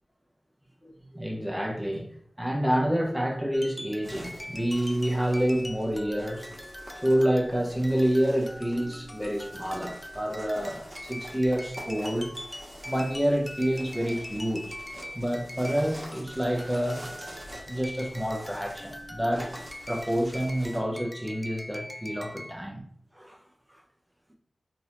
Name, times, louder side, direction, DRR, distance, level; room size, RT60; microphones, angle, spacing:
voice 1, 0.8-2.1 2.4-6.5 6.9-12.3 12.9-14.8 15.1-17.1 17.7-19.5 19.9-22.8 23.1-23.4, equal, 5° right, 0.8 m, -28 dB
sound 1, 3.5-22.6, equal, 10° left, 0.4 m, -43 dB
sound 2, 4.0-20.8, right 1 dB, 25° right, 1.4 m, -46 dB
3.9 x 2.9 x 2.6 m
cardioid pair, 55°, 0 cm